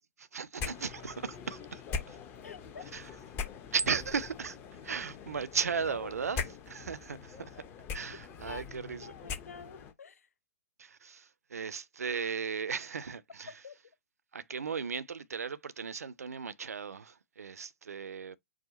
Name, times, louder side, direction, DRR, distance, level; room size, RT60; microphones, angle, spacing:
voice 1, 0.3-1.8 2.1-2.2 2.9-3.0 3.7-4.6 4.8-7.6 7.9-9.1 10.8-13.5 14.3-18.4, right 6 dB, 80° right, 0.5 m, -36 dB
sound 1, 0.6-9.9, left 5 dB, 30° left, 0.7 m, -42 dB
voice 2, 2.4-2.9 8.4-8.6 9.0-10.3 13.5-13.8, left 6 dB, 80° left, 0.5 m, -48 dB
4.8 x 2.1 x 4.1 m
hypercardioid pair, 115°, 8 cm